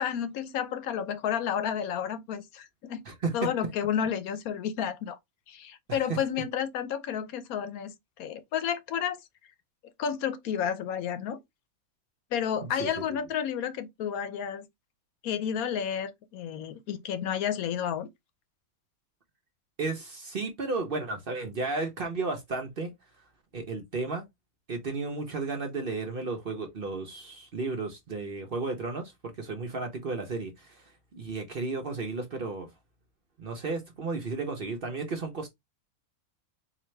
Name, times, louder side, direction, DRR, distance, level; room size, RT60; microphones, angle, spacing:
voice 1, 0.0-3.0 3.3-5.2 5.5-7.9 8.2-9.2 10.0-11.4 12.3-14.7 15.2-18.1, left 8 dB, 75° left, 1.1 m, -31 dB
voice 2, 3.0-3.5 5.9-6.0 12.7-12.9 19.8-22.9 23.5-24.2 24.7-30.8 31.1-32.7 33.4-35.5, right 3 dB, 45° right, 0.8 m, -33 dB
4.1 x 2.8 x 3.2 m
omnidirectional pair, 1.6 m